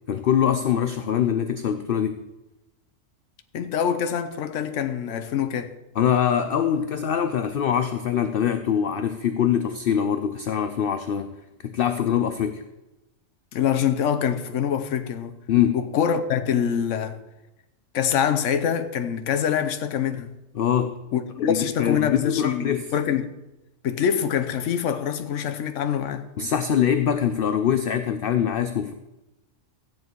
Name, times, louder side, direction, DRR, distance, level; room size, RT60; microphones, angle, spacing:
voice 1, 0.1-2.2 6.0-11.4 11.6-12.6 15.5-15.8 20.5-21.0 21.4-22.9 26.4-28.9, left 9 dB, 55° left, 0.7 m, -23 dB
voice 2, 3.5-5.7 13.5-15.4 15.7-17.2 17.9-20.3 21.1-23.3 23.8-26.3, left 8 dB, 70° left, 1.1 m, -25 dB
14.0 x 9.1 x 4.6 m
omnidirectional pair, 1.4 m